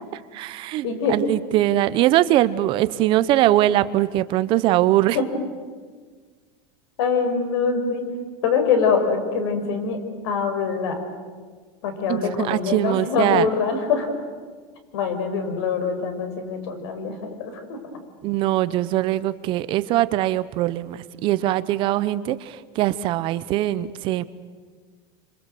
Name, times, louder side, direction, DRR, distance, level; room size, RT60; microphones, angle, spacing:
voice 1, 0.1-5.2 12.1-13.5 18.2-24.2, right 14 dB, 40° right, 15 dB, 0.8 m, -22 dB
voice 2, 0.8-1.2 5.1-5.2 7.0-8.0 8.4-10.0 10.2-11.0 11.8-14.1 14.9-17.8, left 5 dB, 75° left, 7 dB, 5.3 m, -24 dB
27.0 x 26.0 x 7.8 m, 1.5 s
supercardioid pair, 165°, 14 cm